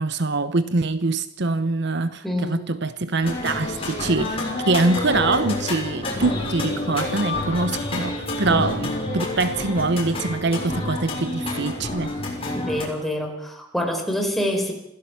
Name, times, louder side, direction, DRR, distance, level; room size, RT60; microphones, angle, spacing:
voice 1, 0.0-12.2, right 3 dB, 60° right, 0.9 m, -24 dB
voice 2, 2.2-2.7 8.5-8.6 12.5-14.7, left 1 dB, ahead, 4.3 m, -26 dB
sound 1, 3.2-12.8, left 2 dB, 30° left, 6.6 m, -28 dB
27.0 x 16.5 x 7.0 m
head